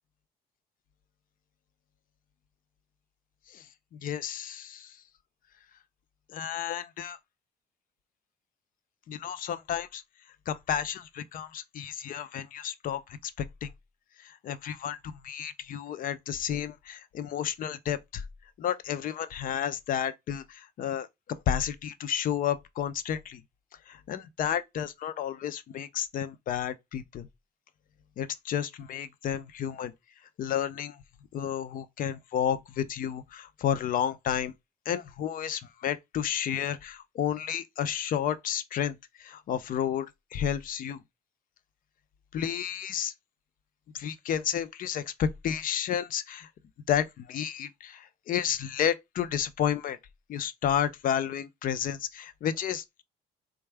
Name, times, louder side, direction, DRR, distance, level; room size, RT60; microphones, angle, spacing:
voice 1, 3.9-5.0 6.3-7.2 9.1-10.0 10.5-13.7 14.2-18.2 18.6-21.1 21.5-23.4 23.9-27.3 28.2-29.9 30.4-31.0 31.3-34.5 34.9-40.1 40.3-41.0 42.3-43.1 43.9-46.5 46.9-50.0 50.3-53.0, left 9 dB, 55° left, 0.5 m, -31 dB
4.4 x 2.3 x 3.2 m
cardioid pair, 110°, 17 cm